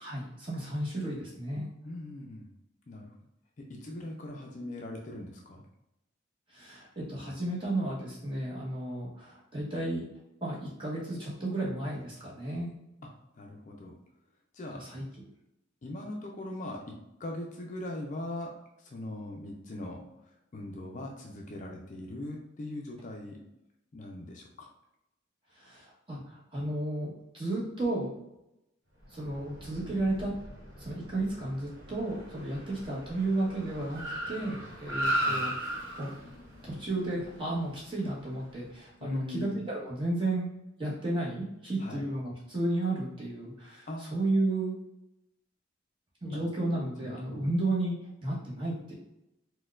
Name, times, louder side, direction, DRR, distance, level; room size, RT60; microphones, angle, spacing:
voice 1, 0.0-1.7 6.5-10.0 10.4-12.7 14.7-15.2 25.5-28.1 29.1-30.3 30.8-36.1 36.6-40.5 40.8-44.7 46.2-48.9, right 2 dB, 25° right, -6 dB, 1.0 m, -33 dB
voice 2, 1.8-2.5 2.9-3.1 3.7-5.6 13.4-13.9 14.5-14.8 15.8-18.5 18.8-20.1 20.5-23.4 23.9-24.7 35.1-35.4 39.0-39.6 41.8-42.0 43.9-44.2 46.3-47.5, left 1 dB, 40° left, 0 dB, 0.4 m, -40 dB
Car, 29.1-38.6, right 1 dB, 60° right, 1.2 m, -37 dB
4.2 x 2.2 x 2.4 m, 0.87 s
head